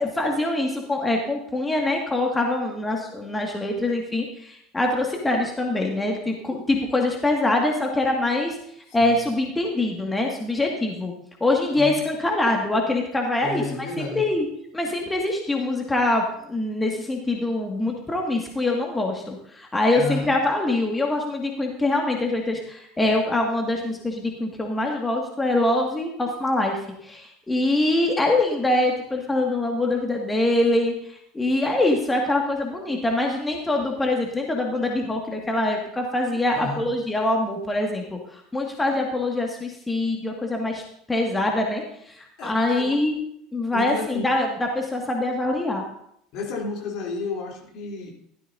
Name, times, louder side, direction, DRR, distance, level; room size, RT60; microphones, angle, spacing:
voice 1, 0.0-8.6 8.9-11.1 11.4-14.5 14.7-40.8 41.1-43.2 43.5-45.8, left 2 dB, 15° left, 1 dB, 2.0 m, -24 dB
voice 2, 13.4-14.2 19.9-20.3 36.5-36.9 42.4-43.0 43.7-44.3 46.3-48.1, left 3 dB, 50° left, -1 dB, 3.4 m, -31 dB
15.5 x 13.0 x 2.7 m, 0.72 s
figure-of-eight pair, 70°, 0 cm